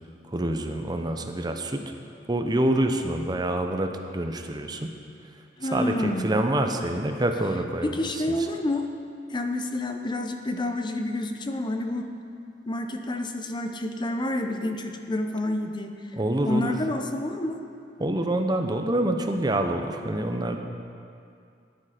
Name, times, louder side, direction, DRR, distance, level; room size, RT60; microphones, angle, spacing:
voice 1, 0.2-1.9 2.3-4.9 5.6-8.2 16.1-16.7 18.0-20.6, right 1 dB, 25° right, 5 dB, 0.7 m, -26 dB
voice 2, 5.6-6.3 7.8-8.9 9.3-12.1 12.7-16.2 16.4-17.6, left 1 dB, 25° left, 5 dB, 0.7 m, -29 dB
14.0 x 10.0 x 5.1 m, 2.4 s
head